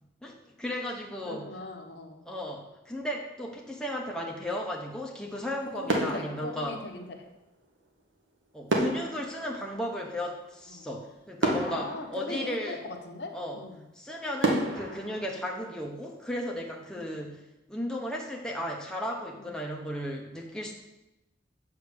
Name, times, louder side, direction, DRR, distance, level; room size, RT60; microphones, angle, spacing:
voice 1, 0.2-1.5 2.3-6.8 8.5-12.8 13.3-13.6 13.9-17.4 17.7-20.7, equal, 5° left, -1 dB, 0.8 m, -35 dB
voice 2, 1.2-2.3 5.7-7.3 10.7-10.9 11.5-13.8 16.9-17.2 19.4-19.5, left 2 dB, 60° left, 3 dB, 1.1 m, -40 dB
sound 1, 5.2-5.6 5.9-7.3 8.7-10.6 11.0-11.1 11.4-13.0 13.5-13.6 14.4-16.3 16.6-16.9, right 1 dB, 80° right, 1.5 m, -32 dB
7.7 x 4.8 x 6.9 m, 0.94 s
head